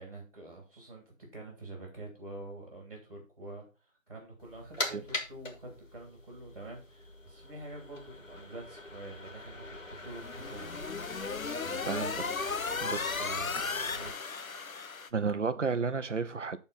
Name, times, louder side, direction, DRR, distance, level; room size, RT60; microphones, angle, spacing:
voice 1, 0.0-3.7 4.1-10.7 10.9-12.0 13.2-14.1, right 2 dB, 25° right, 3.0 m, -47 dB
sound 1, 4.4-14.1, left 2 dB, 65° left, 2.4 m, -42 dB
sound 2, 10.1-15.1, left 5 dB, 80° left, 0.9 m, -35 dB
voice 2, 11.9-12.3 12.8-13.2 15.1-16.6, right 5 dB, 60° right, 0.9 m, -32 dB
11.5 x 4.4 x 4.1 m
figure-of-eight pair, 180°, 41 cm